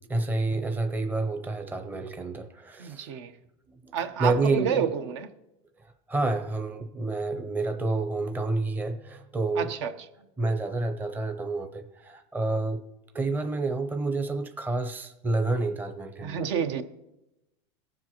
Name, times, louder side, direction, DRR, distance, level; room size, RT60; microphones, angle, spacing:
voice 1, 0.1-3.2 3.7-3.9 4.2-4.8 6.1-9.7 10.4-12.8 13.1-16.5, right 2 dB, 10° right, 0.6 m, -29 dB
voice 2, 2.8-3.3 3.9-5.3 9.5-9.9 16.2-16.8, right 7 dB, 70° right, 0.9 m, -29 dB
19.0 x 7.5 x 3.0 m
supercardioid pair, 140°, 15 cm